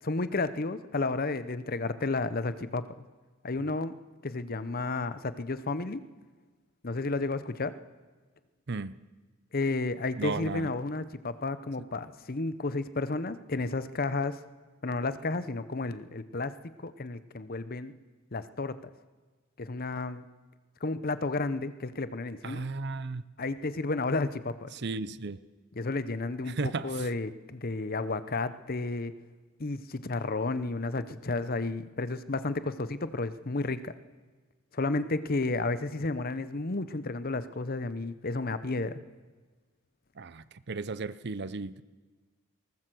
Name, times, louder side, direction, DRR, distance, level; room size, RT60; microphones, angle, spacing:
voice 1, 0.0-2.9 3.4-3.9 4.2-6.1 6.8-7.8 9.5-14.4 14.8-16.5 16.8-17.9 18.3-18.8 19.6-20.3 20.8-22.7 23.4-24.7 25.8-29.1 29.6-33.9 34.7-39.0, left 3 dB, 40° left, 13 dB, 0.8 m, -32 dB
voice 2, 8.7-9.0 10.2-10.7 22.4-23.2 24.7-25.4 26.5-27.1 40.2-41.8, right 3 dB, 50° right, 16 dB, 0.6 m, -35 dB
20.0 x 19.0 x 7.8 m, 1.4 s
head